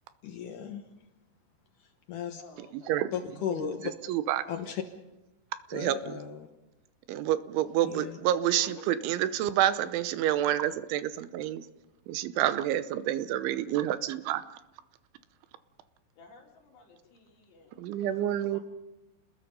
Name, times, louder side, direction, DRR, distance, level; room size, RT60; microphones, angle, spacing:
voice 1, 0.2-0.8 2.1-2.4 3.1-3.9 4.5-4.8 5.7-6.4 7.8-8.1, left 8 dB, 90° left, 5 dB, 1.7 m, -35 dB
voice 2, 2.4-3.0 8.5-9.1 12.4-12.7 16.2-18.6, left 4 dB, 60° left, -2 dB, 5.7 m, -53 dB
voice 3, 3.6-4.5 5.7-6.2 7.1-11.7 12.1-14.4 17.8-18.6, right 12 dB, 80° right, 12 dB, 3.2 m, -28 dB
30.0 x 20.5 x 5.4 m, 1.0 s
omnidirectional pair, 5.5 m